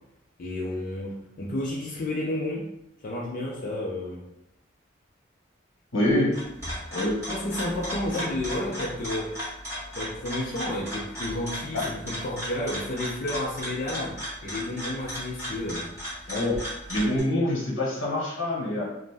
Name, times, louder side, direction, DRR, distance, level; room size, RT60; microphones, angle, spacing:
voice 1, 0.4-2.7 3.0-4.2 7.3-9.3 9.9-14.2 14.4-15.9, left 1 dB, 45° left, -4 dB, 0.4 m, -31 dB
voice 2, 5.9-6.3 6.9-7.2 11.7-11.8 16.3-16.5 16.9-18.8, left 1 dB, 80° left, -4 dB, 1.0 m, -25 dB
sound 1, 6.3-17.2, equal, 15° right, 1.2 m, -35 dB
2.5 x 2.1 x 3.3 m, 0.82 s
head